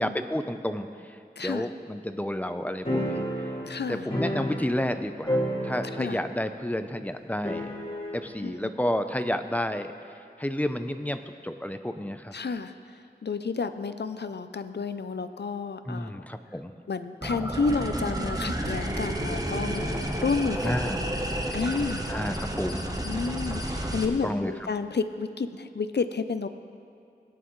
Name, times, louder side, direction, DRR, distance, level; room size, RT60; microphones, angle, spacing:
voice 1, 0.0-3.2 3.9-7.7 8.1-9.9 10.4-12.3 15.9-16.8 20.6-21.0 22.1-22.9 24.2-24.5, left 1 dB, 10° left, 8 dB, 0.6 m, -31 dB
voice 2, 1.4-1.7 3.6-4.1 6.0-6.2 8.4-8.7 12.3-12.7 13.2-16.2 16.9-22.1 23.0-26.5, left 4 dB, 75° left, 10 dB, 0.5 m, -31 dB
sound 1, 2.9-5.0 5.2-6.3 6.5-6.6 7.4-8.2, equal, 30° left, 2.4 m, -30 dB
sound 2, 17.2-24.0, right 1 dB, 20° right, 1.1 m, -31 dB
19.5 x 9.4 x 3.2 m, 2.5 s
wide cardioid pair, 45°, 18 cm